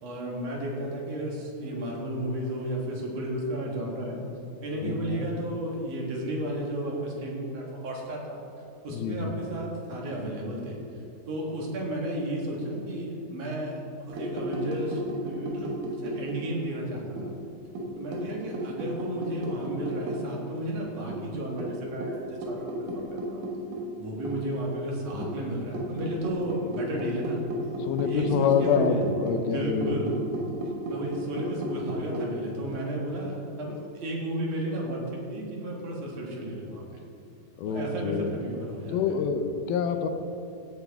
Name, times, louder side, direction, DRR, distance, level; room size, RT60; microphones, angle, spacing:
voice 1, 0.0-4.2 4.6-8.4 8.8-10.8 11.3-15.7 16.0-17.3 18.0-23.4 24.0-27.4 28.0-29.0 29.3-30.3 30.9-36.8 37.6-39.0 39.9-40.0, right 1 dB, 55° right, -2 dB, 2.3 m, -33 dB
voice 2, 4.8-5.3 8.9-9.3 25.1-25.3 27.8-30.0 37.6-38.3 38.9-40.1, left 6 dB, 85° left, 8 dB, 2.6 m, -27 dB
sound 1, 14.1-16.8 17.2-20.3 20.6-20.7 21.1-24.6 25.2-32.3, equal, 75° right, 2.8 m, -34 dB
16.0 x 7.8 x 3.5 m, 2.7 s
omnidirectional pair, 4.2 m